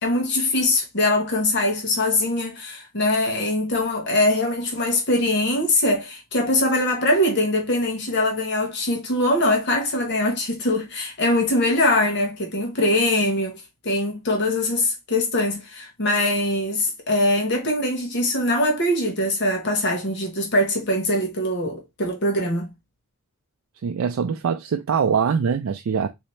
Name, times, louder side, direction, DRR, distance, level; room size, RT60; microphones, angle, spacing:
voice 1, 0.0-22.7, left 1 dB, 55° left, 1.1 m, -22 dB
voice 2, 23.8-26.1, right 6 dB, 80° right, 0.4 m, -23 dB
4.0 x 2.8 x 3.1 m
head